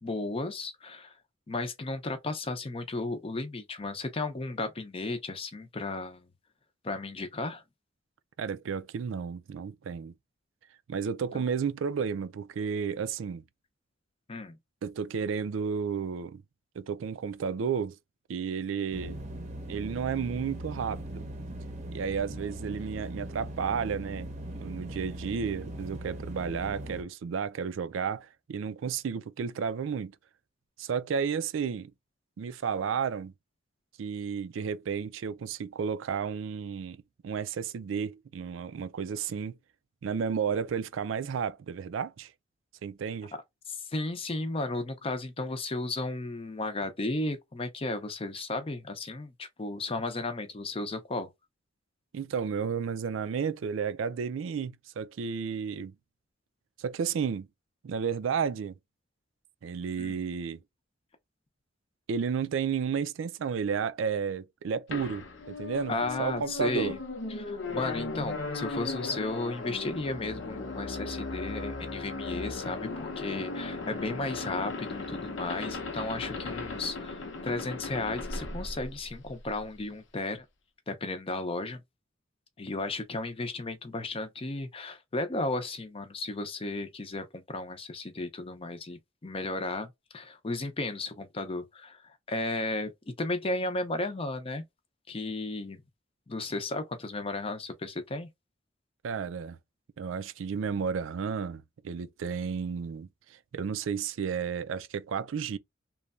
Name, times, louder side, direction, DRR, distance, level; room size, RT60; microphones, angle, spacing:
voice 1, 0.0-1.1 1.5-6.3 6.8-7.6 11.3-11.5 14.3-14.6 43.7-51.3 60.0-60.1 65.9-67.0 67.4-80.4 80.9-81.8 82.6-94.6 95.1-95.8 96.3-98.3, left 2 dB, 30° left, 0.6 m, -34 dB
voice 2, 8.4-10.1 10.9-13.4 14.8-16.4 16.8-18.0 18.3-19.2 19.7-21.3 21.9-24.3 24.6-30.1 30.8-31.9 32.4-33.3 34.0-39.6 40.0-42.3 42.8-43.3 52.1-55.9 56.8-57.5 57.8-58.7 59.6-60.6 62.1-67.0 99.0-99.6 100.0-105.6, right 6 dB, 85° right, 0.4 m, -32 dB
sound 1, 18.9-27.0, right 1 dB, 35° right, 0.7 m, -40 dB
sound 2, 64.9-79.6, left 3 dB, 70° left, 0.7 m, -37 dB
3.1 x 2.2 x 2.4 m
head